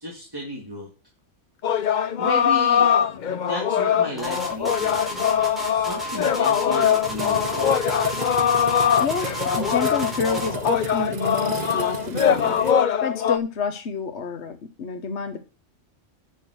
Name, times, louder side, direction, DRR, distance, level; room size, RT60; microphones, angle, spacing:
voice 1, 0.0-0.9 2.2-2.9 3.3-7.8, equal, 20° right, 0 dB, 2.1 m, -34 dB
sound 1, 1.6-13.4, left 8 dB, 50° left, 0.6 m, -22 dB
sound 2, 4.2-10.6, left 1 dB, ahead, 4.4 m, -32 dB
sound 3, 7.0-12.7, right 6 dB, 45° right, 0.7 m, -35 dB
voice 2, 9.0-12.6 13.0-15.5, left 5 dB, 65° left, 7 dB, 1.3 m, -28 dB
10.5 x 5.7 x 6.1 m, 0.31 s
omnidirectional pair, 1.3 m